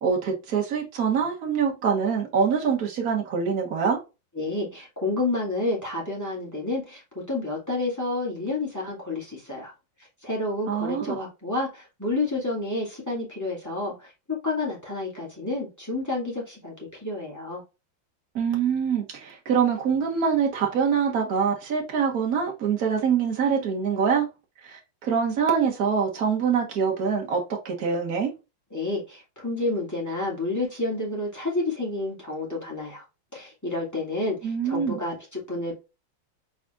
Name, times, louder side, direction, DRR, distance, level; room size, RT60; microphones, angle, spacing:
voice 1, 0.0-4.0 10.7-11.2 18.3-24.3 24.6-28.3 34.4-35.0, right 6 dB, 50° right, 1.8 m, -24 dB
voice 2, 4.4-9.7 10.2-14.1 14.4-17.6 28.7-33.0 33.3-35.8, left 2 dB, 10° left, 2.2 m, -30 dB
5.0 x 4.1 x 2.4 m
omnidirectional pair, 2.2 m